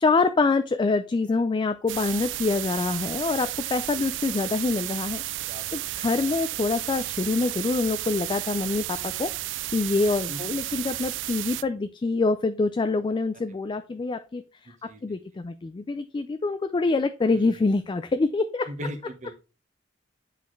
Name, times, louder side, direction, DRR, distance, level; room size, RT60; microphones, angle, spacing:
voice 1, 0.0-5.2 5.7-9.3 9.7-14.4 15.0-18.7, left 3 dB, 25° left, 11 dB, 0.3 m, -25 dB
sound 1, 1.9-11.6, right 16 dB, 75° right, 0.3 m, -33 dB
voice 2, 5.5-5.9 10.3-10.5 14.7-15.2 17.3-17.7 18.6-19.3, equal, 40° right, 5 dB, 1.1 m, -40 dB
8.2 x 4.1 x 3.1 m, 0.33 s
head